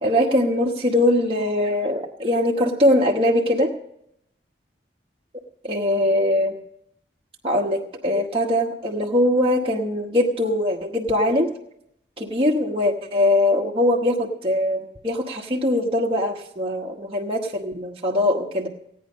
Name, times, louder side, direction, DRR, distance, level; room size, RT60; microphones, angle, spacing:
voice 1, 0.0-3.7 5.6-6.6 7.4-11.5 12.2-18.7, left 1 dB, 30° right, -2 dB, 1.0 m, -21 dB
16.5 x 9.4 x 5.3 m, 0.74 s
head